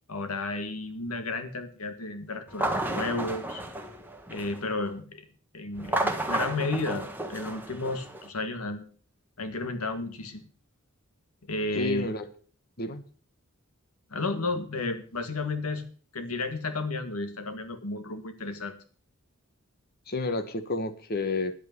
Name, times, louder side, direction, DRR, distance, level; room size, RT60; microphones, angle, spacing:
voice 1, 0.1-3.6 4.3-5.3 5.5-8.8 9.4-10.4 11.4-12.1 14.1-15.9 16.1-18.7, left 3 dB, 85° left, 8 dB, 1.9 m, -32 dB
sound 1, 2.5-4.7 5.8-8.3, right 1 dB, 10° right, 1.5 m, -32 dB
voice 2, 11.7-12.3 12.8-13.1 20.1-21.5, left 2 dB, 45° left, 9 dB, 1.3 m, -30 dB
10.5 x 8.4 x 6.9 m, 0.42 s
head